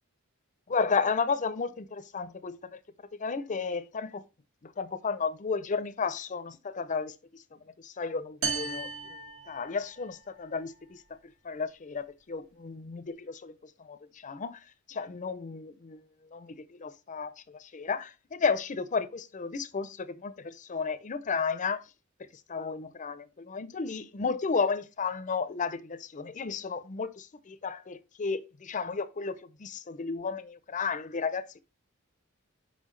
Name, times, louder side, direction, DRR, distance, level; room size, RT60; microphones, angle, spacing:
voice 1, 0.7-2.8 3.2-4.2 4.6-7.1 7.8-8.9 9.5-11.0 11.4-13.5 13.9-14.0 14.2-14.6 14.9-16.0 16.3-21.8 22.5-31.6, left 5 dB, 35° left, 0.5 m, -33 dB
sound 1, 8.4-10.2, right 4 dB, 75° right, 2.1 m, -35 dB
5.6 x 5.4 x 3.2 m
head